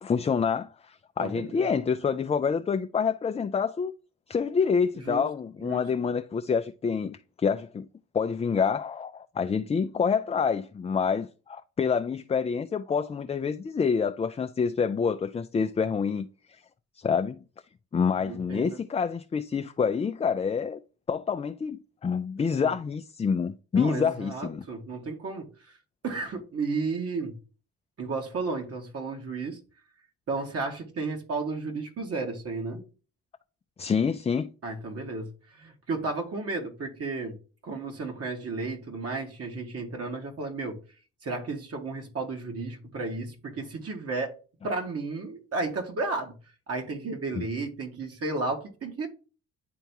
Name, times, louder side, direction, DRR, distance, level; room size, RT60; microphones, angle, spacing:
voice 1, 0.0-4.0 4.3-7.9 8.1-16.6 17.0-17.4 17.9-20.8 21.1-24.6 33.8-34.5 47.4-47.5, left 6 dB, 20° left, 0.4 m, -27 dB
voice 2, 1.2-1.7 4.9-5.3 5.6-5.8 18.2-18.8 22.6-22.7 23.7-25.5 26.0-27.4 28.0-29.6 30.3-32.8 34.6-37.4 37.6-40.8 41.2-44.3 44.6-46.3 46.7-49.1, right 3 dB, 50° right, 1.8 m, -33 dB
10.0 x 3.5 x 2.9 m
cardioid pair, 90°, 30 cm